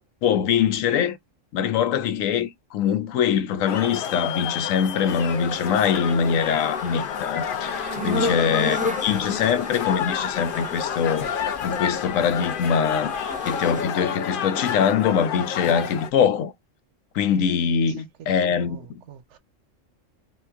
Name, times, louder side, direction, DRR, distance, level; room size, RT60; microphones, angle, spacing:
voice 1, 0.2-1.2 1.5-11.3 11.6-13.1 13.5-16.5 17.1-19.0, left 7 dB, 85° left, 1.0 m, -23 dB
sound 1, 3.7-16.1, left 8 dB, 60° left, 0.6 m, -29 dB
sound 2, 5.1-13.8, left 1 dB, 10° right, 0.6 m, -34 dB
voice 2, 7.9-8.5 17.7-19.4, right 10 dB, 70° right, 0.8 m, -40 dB
2.9 x 2.4 x 3.4 m
omnidirectional pair, 1.3 m